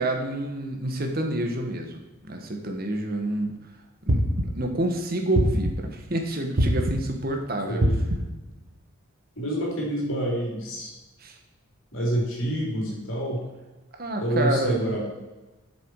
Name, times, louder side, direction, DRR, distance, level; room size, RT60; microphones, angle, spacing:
voice 1, 0.0-3.5 4.1-7.8 11.2-11.4 14.0-15.0, right 1 dB, 45° right, 4 dB, 1.4 m, -28 dB
sound 1, 4.1-4.7 5.3-6.0 6.6-7.2 7.8-8.5, equal, 60° right, 1.2 m, -24 dB
voice 2, 9.4-10.9 11.9-13.4 14.2-15.0, right 1 dB, 65° left, -3 dB, 3.8 m, -27 dB
11.0 x 7.0 x 4.7 m, 1.1 s
head